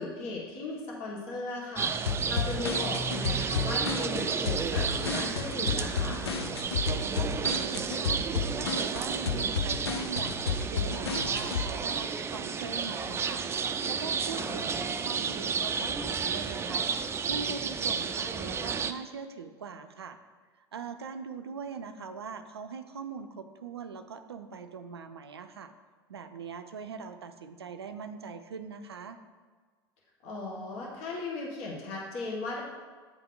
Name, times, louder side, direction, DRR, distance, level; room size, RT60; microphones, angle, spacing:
voice 1, 0.0-6.2 14.3-14.6 30.2-32.6, left 3 dB, 50° left, -2 dB, 1.3 m, -37 dB
sound 1, 1.8-18.9, right 6 dB, 20° right, 0.4 m, -32 dB
sound 2, 2.1-11.7, left 5 dB, 80° left, 0.5 m, -32 dB
voice 2, 6.9-8.2 8.5-13.4 13.9-16.9 17.3-20.2 20.7-25.7 26.1-29.2, right 6 dB, 85° right, 9 dB, 0.4 m, -41 dB
8.9 x 3.5 x 3.8 m, 1.5 s
figure-of-eight pair, 80°, 13 cm